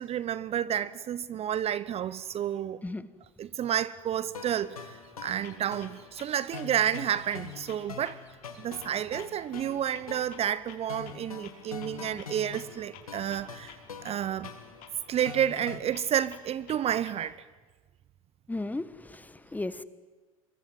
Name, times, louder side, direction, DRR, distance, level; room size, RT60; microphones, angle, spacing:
voice 1, 0.0-2.8 3.4-8.2 8.6-13.8 14.0-14.5 15.1-17.4, right 10 dB, 35° right, 0.9 m, -30 dB
sound 1, 4.3-15.8, left 6 dB, 85° left, 2.4 m, -45 dB
Clock, 5.4-17.4, left 8 dB, 50° left, 5.7 m, -54 dB
voice 2, 18.5-19.8, left 2 dB, 10° left, 1.4 m, -35 dB
27.0 x 23.5 x 9.4 m
hypercardioid pair, 80°, 18 cm